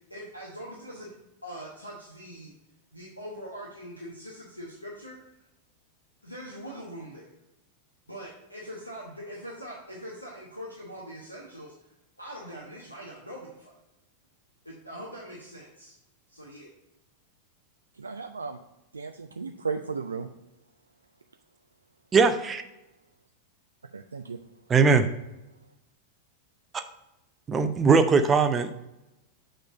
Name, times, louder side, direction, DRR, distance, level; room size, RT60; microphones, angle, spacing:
voice 1, 0.1-1.1 1.4-2.5 2.9-5.2 6.2-7.3 8.1-11.7 12.2-13.7 14.6-16.0 16.3-16.7, equal, 85° left, -4 dB, 1.1 m, -42 dB
voice 2, 17.9-18.6 18.9-20.3 23.9-24.4, right 5 dB, 75° right, 6 dB, 0.3 m, -35 dB
voice 3, 22.1-22.6 24.7-25.1 26.7-26.8 27.5-28.7, right 5 dB, 20° right, 9 dB, 0.6 m, -20 dB
7.1 x 3.8 x 5.2 m, 0.92 s
figure-of-eight pair, 90°, 0 cm